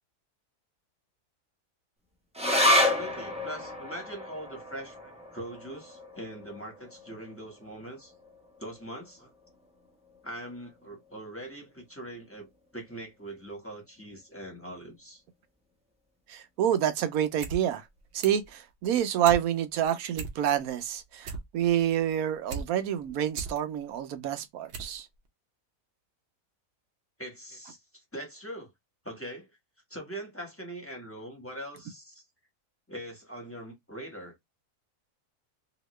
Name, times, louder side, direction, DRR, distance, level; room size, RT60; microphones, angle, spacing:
sound 1, 2.3-9.1 9.4-9.5 9.9-10.5 11.1-11.2, left 1 dB, 5° right, 0.6 m, -30 dB
voice 1, 2.6-8.1 8.6-9.3 10.2-15.2 27.2-28.7 29.0-29.6 29.9-32.2 32.9-34.4, right 1 dB, 10° left, 1.3 m, -42 dB
voice 2, 16.3-17.8 18.1-25.1, right 10 dB, 75° right, 1.0 m, -28 dB
sound 2, 17.4-17.6 17.9-18.5 18.9-19.4 19.8-19.9 20.1-20.7 21.0-22.7 23.1-23.6 24.1-24.2 24.7-25.0 25.3-25.4, right 4 dB, 55° right, 0.9 m, -38 dB
2.9 x 2.8 x 3.1 m
omnidirectional pair, 1.6 m